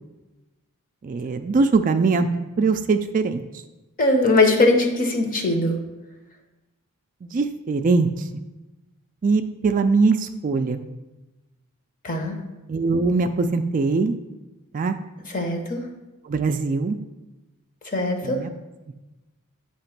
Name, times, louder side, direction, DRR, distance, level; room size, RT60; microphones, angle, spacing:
voice 1, 1.0-2.3 2.6-3.4 7.2-8.1 9.2-10.8 12.7-14.1 14.7-15.0 16.3-17.0 18.2-18.5, right 4 dB, 35° right, 7 dB, 0.3 m, -21 dB
voice 2, 4.0-5.8 12.0-12.3 15.3-15.8 17.9-18.4, left 2 dB, 40° left, 4 dB, 0.9 m, -20 dB
8.5 x 3.0 x 5.8 m, 1.1 s
head